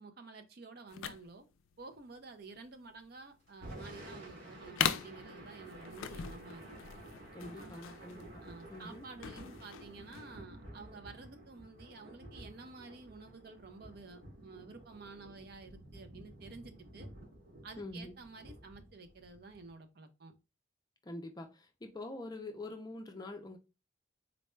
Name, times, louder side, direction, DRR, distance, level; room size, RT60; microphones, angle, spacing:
voice 1, 0.0-1.5 1.8-6.9 7.5-8.0 8.4-17.1 17.6-20.3, right 3 dB, 50° right, 0.5 m, -51 dB
sound 1, 0.9-10.4, left 8 dB, 85° left, 0.3 m, -41 dB
Thunder / Rain, 3.5-19.7, right 1 dB, 85° right, 1.8 m, -52 dB
voice 2, 7.3-9.0 17.8-18.1 21.0-23.6, left 2 dB, 20° left, 0.4 m, -45 dB
3.9 x 2.2 x 3.0 m
head